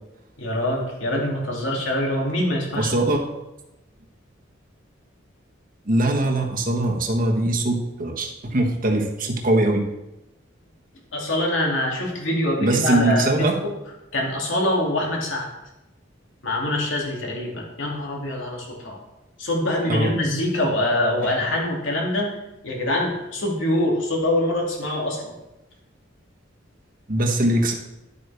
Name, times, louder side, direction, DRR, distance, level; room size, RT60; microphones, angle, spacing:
voice 1, 0.4-2.9 11.1-13.7 14.1-15.5 16.4-19.0 19.4-22.3 22.6-25.3, left 1 dB, 75° left, -1 dB, 2.6 m, -24 dB
voice 2, 2.7-3.2 5.9-9.8 12.6-13.6 19.9-20.1 27.1-27.7, right 1 dB, 45° right, 2 dB, 1.3 m, -21 dB
11.0 x 8.2 x 3.5 m, 0.95 s
head